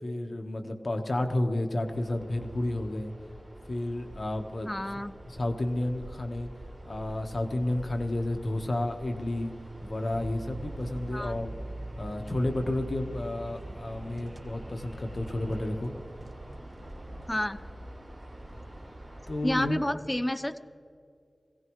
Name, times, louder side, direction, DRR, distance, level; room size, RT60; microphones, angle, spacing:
voice 1, 0.0-3.1 3.7-4.8 5.3-6.5 6.8-9.5 9.8-11.5 12.0-15.9 19.3-19.8, left 1 dB, 55° left, 5 dB, 1.2 m, -31 dB
sound 1, 1.8-19.7, right 1 dB, 25° right, 4.6 m, -46 dB
voice 2, 4.7-5.1 11.1-11.3 17.3-17.6 19.4-20.6, left 1 dB, 20° left, 12 dB, 0.6 m, -30 dB
sound 2, 10.1-17.6, right 2 dB, 45° right, 1.3 m, -44 dB
22.0 x 16.5 x 3.2 m, 2.4 s
wide cardioid pair, 60°, 0 cm